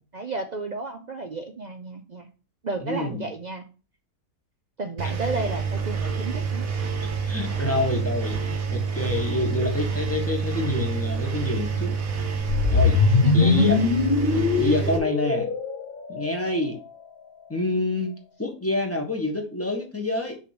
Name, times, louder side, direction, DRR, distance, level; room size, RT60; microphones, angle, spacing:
voice 1, 0.1-2.3 2.6-3.7 4.8-6.7 13.2-13.7, right 3 dB, 80° right, 5 dB, 0.4 m, -32 dB
voice 2, 2.8-3.3 7.2-11.9 12.7-13.0 13.3-13.8 14.3-15.5 16.1-16.8 17.5-18.1 18.4-20.4, left 2 dB, 10° left, 1 dB, 1.3 m, -27 dB
Engine, 5.0-15.0, right 5 dB, 60° right, 1.4 m, -28 dB
sound 1, 12.5-16.7, left 5 dB, 75° left, 0.5 m, -22 dB
6.4 x 3.3 x 5.9 m, 0.35 s
omnidirectional pair, 1.7 m